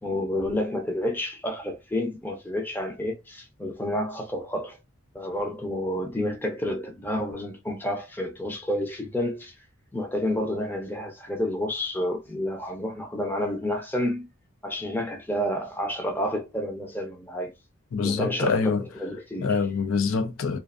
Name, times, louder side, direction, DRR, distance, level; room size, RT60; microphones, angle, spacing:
voice 1, 0.0-4.8 5.1-9.5 9.9-14.3 14.6-17.5 18.0-19.6, left 1 dB, 10° left, 0.5 m, -30 dB
voice 2, 17.9-18.8 19.4-20.6, left 5 dB, 80° left, 0.5 m, -25 dB
2.4 x 2.3 x 2.4 m
head